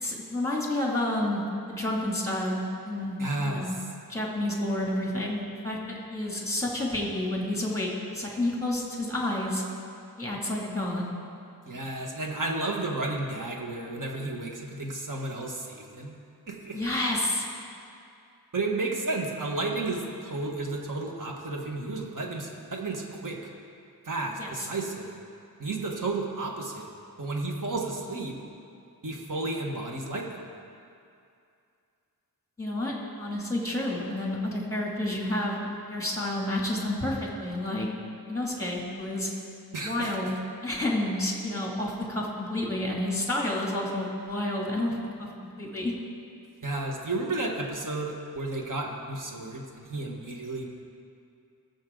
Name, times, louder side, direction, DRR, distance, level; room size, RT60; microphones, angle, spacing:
voice 1, 0.0-3.2 3.4-3.8 4.1-9.6 10.2-11.1 16.7-17.4 24.4-24.5 32.6-32.9 33.2-37.9 38.3-39.3 39.8-40.3 40.6-45.3 45.6-45.9, left 1 dB, 10° left, -2 dB, 2.5 m, -30 dB
voice 2, 3.2-3.9 11.7-16.1 16.5-16.8 18.5-23.4 24.0-25.1 25.6-26.9 27.2-28.4 29.0-30.4 39.7-40.2 46.6-50.7, right 2 dB, 55° right, 0 dB, 1.5 m, -32 dB
19.0 x 7.4 x 3.9 m, 2.5 s
wide cardioid pair, 90°, 38 cm